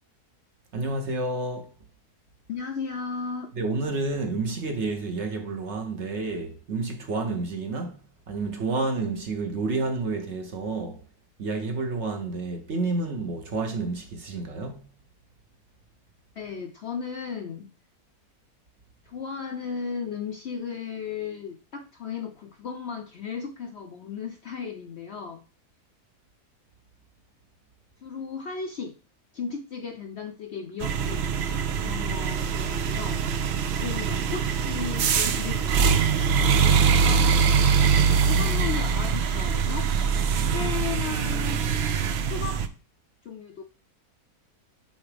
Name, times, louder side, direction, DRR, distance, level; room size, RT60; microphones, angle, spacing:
voice 1, 0.7-1.7 3.5-11.0 11.4-14.9, right 3 dB, 50° right, 1.0 m, -30 dB
voice 2, 2.5-3.5 16.4-17.7 19.0-25.4 28.0-28.9 29.3-31.3 31.8-33.2 33.8-37.3 38.3-39.9 40.5-41.7 42.2-42.6 43.2-43.6, left 6 dB, 60° left, 0.7 m, -35 dB
sound 1, 30.8-42.7, right 6 dB, 70° right, 0.6 m, -23 dB
8.5 x 3.6 x 3.4 m
omnidirectional pair, 1.7 m